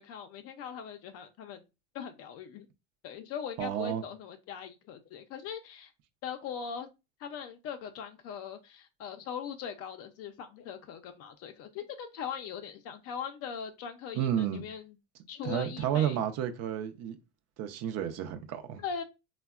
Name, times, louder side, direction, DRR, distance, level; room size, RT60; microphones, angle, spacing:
voice 1, 0.0-1.6 1.9-2.7 3.0-5.9 6.2-6.9 7.2-15.0 15.3-16.2 18.8-19.0, left 7 dB, 45° left, 0.4 m, -40 dB
voice 2, 3.6-4.0 14.1-14.6 15.4-17.2 17.6-18.8, right 10 dB, 50° right, 0.6 m, -31 dB
3.4 x 2.1 x 2.3 m
supercardioid pair, 120°, 33 cm